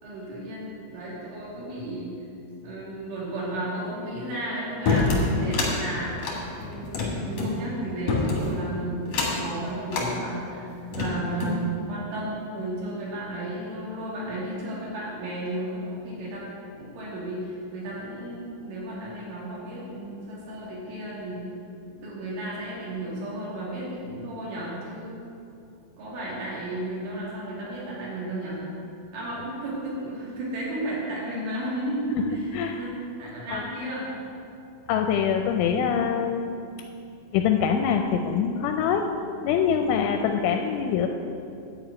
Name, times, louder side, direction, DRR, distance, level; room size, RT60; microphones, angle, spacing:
voice 1, 0.0-2.1 2.6-6.3 6.5-16.4 16.8-21.4 21.9-25.2 26.0-28.6 29.1-34.1, right 1 dB, 70° right, -7 dB, 5.2 m, -33 dB
sound 1, 4.9-5.7 6.2-7.5 8.1-8.6 9.1-9.5 9.9-10.1 10.7-11.6, left 3 dB, 70° left, 1.5 m, -26 dB
voice 2, 34.9-36.5 37.3-39.1 39.4-41.1, left 7 dB, 85° left, 5 dB, 2.8 m, -24 dB
11.0 x 5.0 x 8.4 m, 2.6 s
omnidirectional pair, 5.9 m